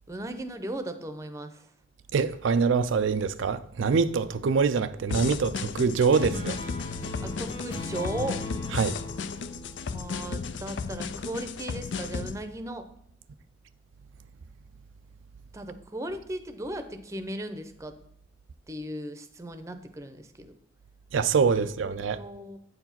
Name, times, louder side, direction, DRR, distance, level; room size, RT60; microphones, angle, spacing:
voice 1, 0.1-1.7 7.2-8.4 9.9-12.9 15.5-18.0 18.7-20.5 21.8-22.6, right 1 dB, 15° right, 0.6 m, -37 dB
voice 2, 2.1-6.6 8.7-9.0 21.1-22.2, right 5 dB, 80° right, 0.4 m, -24 dB
sound 1, 5.1-12.4, left 5 dB, 70° left, 0.4 m, -35 dB
sound 2, 5.9-10.8, left 2 dB, 30° left, 0.9 m, -38 dB
8.5 x 4.7 x 5.8 m
head